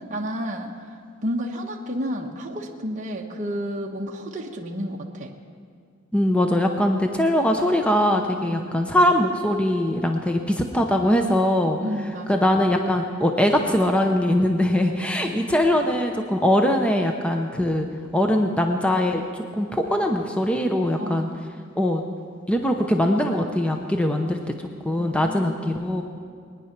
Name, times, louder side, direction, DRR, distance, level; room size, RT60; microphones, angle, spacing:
voice 1, 0.0-5.3 8.5-8.7 11.8-12.4 15.2-15.4 21.0-21.5 25.0-25.7, equal, 35° right, -1 dB, 1.1 m, -31 dB
voice 2, 6.1-11.8 12.3-17.9 18.1-21.3 21.8-22.0 22.5-24.6 24.8-26.0, left 1 dB, 5° left, 4 dB, 0.7 m, -21 dB
21.5 x 10.0 x 5.9 m, 2.2 s
head